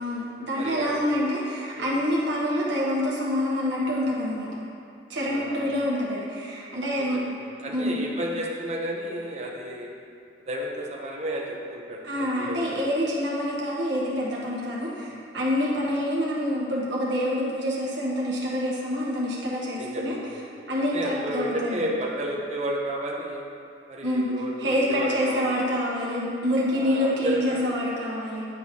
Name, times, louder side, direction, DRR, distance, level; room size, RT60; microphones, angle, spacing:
voice 1, 0.0-4.6 5.1-7.2 7.7-8.0 12.0-20.1 20.7-21.8 24.0-24.3 24.6-28.5, equal, 85° right, -6 dB, 1.1 m, -27 dB
voice 2, 0.5-1.0 1.7-2.0 5.2-5.7 6.9-9.9 10.5-12.6 15.1-15.3 15.6-15.9 19.7-23.4 23.9-25.5 26.7-27.6, right 1 dB, 40° right, -1 dB, 0.7 m, -32 dB
9.5 x 4.4 x 2.8 m, 2.6 s
head